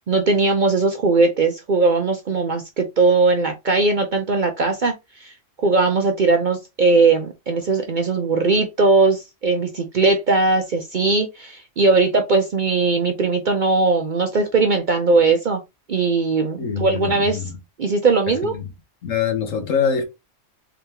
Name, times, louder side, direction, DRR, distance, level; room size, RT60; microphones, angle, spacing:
voice 1, 0.1-4.9 5.2-5.3 5.6-15.6 15.9-17.4 17.8-18.5, right 3 dB, 50° right, 0.6 m, -19 dB
voice 2, 16.6-17.6 18.4-18.7 19.0-20.0, left 7 dB, 75° left, 1.4 m, -24 dB
3.9 x 3.4 x 2.8 m
omnidirectional pair, 1.4 m